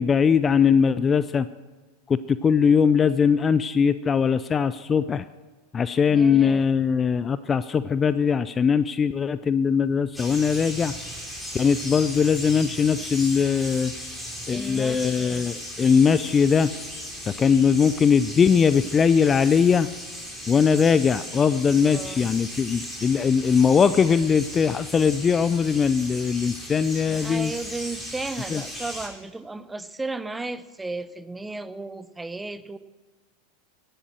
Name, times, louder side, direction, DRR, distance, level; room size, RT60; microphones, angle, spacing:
voice 1, 0.0-1.5 2.1-5.2 5.7-10.9 11.5-13.9 14.5-16.7 17.4-19.9 20.5-27.5 28.5-28.6, left 6 dB, 25° left, 14 dB, 0.5 m, -20 dB
voice 2, 6.1-6.7 14.5-15.5 21.8-22.3 27.1-32.8, right 2 dB, 10° right, 15 dB, 0.9 m, -34 dB
sound 1, 10.1-29.1, equal, 5° left, 5.0 m, -37 dB
17.0 x 11.5 x 6.4 m, 1.3 s
figure-of-eight pair, 85°, 0 cm